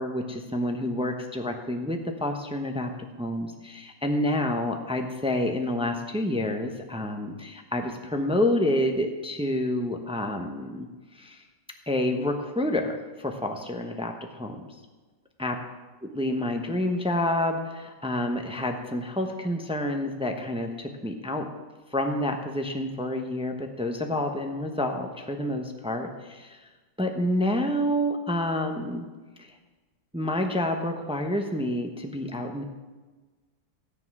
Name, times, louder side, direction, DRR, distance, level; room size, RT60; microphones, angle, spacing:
voice 1, 0.0-2.9 3.2-10.9 11.1-11.4 11.9-14.7 15.4-15.6 16.0-21.5 21.9-26.6 27.0-29.1 29.4-29.5 30.1-32.6, left 1 dB, 5° right, 4 dB, 0.4 m, -28 dB
13.5 x 9.7 x 6.1 m, 1.3 s
omnidirectional pair, 2.0 m